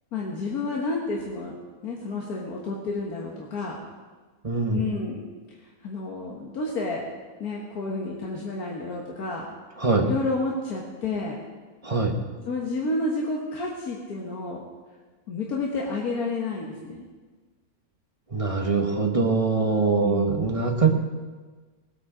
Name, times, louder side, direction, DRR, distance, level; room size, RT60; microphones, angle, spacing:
voice 1, 0.1-3.8 4.7-5.3 5.8-7.1 7.4-9.5 10.0-11.4 12.5-14.6 15.3-17.0 20.0-20.6, left 3 dB, 80° left, -2 dB, 1.9 m, -30 dB
voice 2, 4.4-4.9 9.8-10.1 11.8-12.2 18.3-20.9, right 4 dB, 25° right, 3 dB, 1.1 m, -23 dB
19.0 x 8.8 x 5.0 m, 1.4 s
omnidirectional pair, 1.6 m